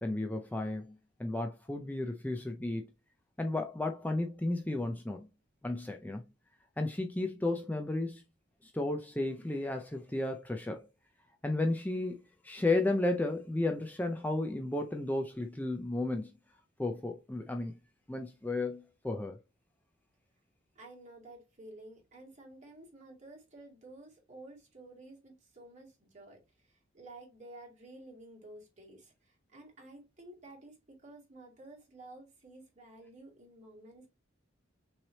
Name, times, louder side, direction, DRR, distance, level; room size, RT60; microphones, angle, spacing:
voice 1, 0.0-0.9 1.2-2.8 3.4-5.3 5.6-6.2 6.8-8.2 8.6-10.8 11.4-16.3 16.8-17.7 18.1-19.4, left 2 dB, 10° left, 0.4 m, -33 dB
voice 2, 20.8-30.7 31.0-34.1, right 2 dB, 40° right, 2.4 m, -52 dB
5.9 x 3.2 x 2.8 m
head